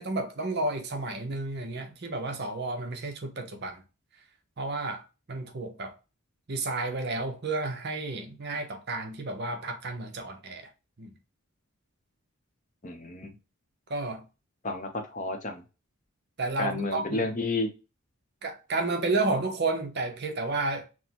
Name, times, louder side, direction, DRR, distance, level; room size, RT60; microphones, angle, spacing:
voice 1, 0.0-3.8 4.6-5.9 6.5-10.7 11.0-11.1 13.9-14.2 16.4-17.3 18.4-20.9, right 2 dB, 45° right, 0.7 m, -31 dB
voice 2, 12.8-13.3 14.6-15.6 16.6-17.7, left 2 dB, 35° left, 0.7 m, -31 dB
6.0 x 2.1 x 2.9 m
head